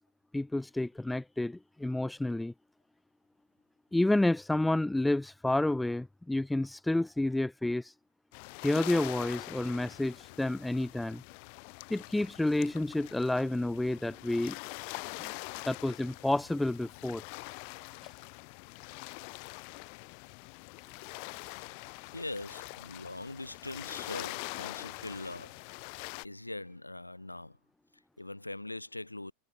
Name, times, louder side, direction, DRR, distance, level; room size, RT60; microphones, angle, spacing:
voice 1, 0.3-2.5 3.9-7.8 8.6-11.2 11.9-14.5 15.3-15.4 15.6-17.2, left 1 dB, 5° left, 2.2 m, -30 dB
sound 1, 8.3-26.3, left 39 dB, 50° left, 2.8 m, -44 dB
voice 2, 22.1-25.6 26.2-27.6 27.9-29.3, left 2 dB, 90° left, 3.3 m, -42 dB
figure-of-eight pair, 85°, 0 cm